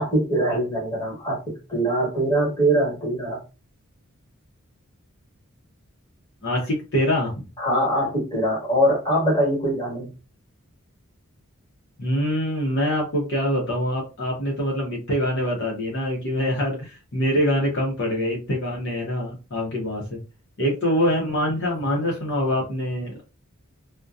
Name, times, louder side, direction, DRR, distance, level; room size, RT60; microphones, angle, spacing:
voice 1, 0.0-1.4 1.7-3.4 7.6-10.1, right 1 dB, 15° left, -3 dB, 1.2 m, -22 dB
voice 2, 6.4-7.3 12.0-20.2 20.6-23.2, equal, 55° left, -2 dB, 0.7 m, -24 dB
2.6 x 2.1 x 2.3 m, 0.31 s
head